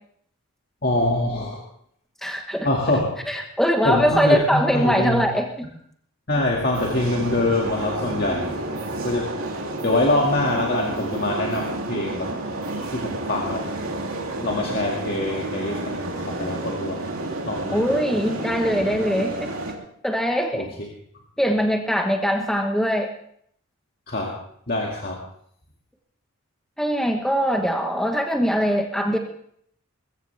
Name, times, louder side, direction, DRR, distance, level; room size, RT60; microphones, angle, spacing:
voice 1, 0.8-1.6 2.6-3.1 3.8-5.2 6.3-8.5 9.0-9.3 9.8-12.3 12.9-13.6 14.4-17.0 17.4-17.8 20.5-20.9 24.1-24.3 24.7-25.2, left 1 dB, 45° left, -2 dB, 2.1 m, -24 dB
voice 2, 2.2-2.7 3.3-5.7 17.7-19.5 20.0-20.7 21.4-23.1 26.8-29.2, equal, ahead, 3 dB, 1.2 m, -22 dB
sound 1, 6.7-19.7, right 2 dB, 75° right, 3.0 m, -30 dB
22.0 x 14.5 x 3.4 m, 0.67 s
head